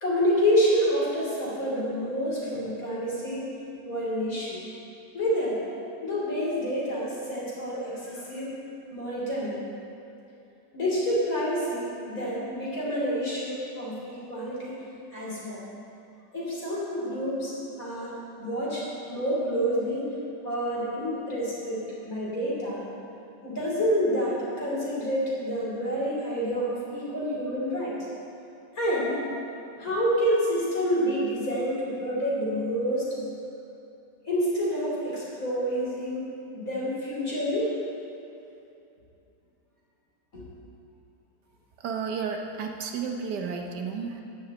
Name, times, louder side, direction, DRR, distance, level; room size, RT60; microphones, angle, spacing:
voice 1, 0.0-3.4 3.9-4.6 5.1-5.6 6.0-8.5 8.9-9.6 10.7-14.8 15.1-15.6 16.3-17.5 17.8-20.1 20.4-22.8 23.4-28.0 28.8-29.2 29.8-33.2 34.3-36.2 36.5-37.8 40.3-40.4, equal, 55° left, -6 dB, 3.4 m, -28 dB
voice 2, 41.8-44.2, right 5 dB, 80° right, 3 dB, 1.5 m, -32 dB
10.0 x 6.4 x 7.6 m, 2.8 s
omnidirectional pair, 1.8 m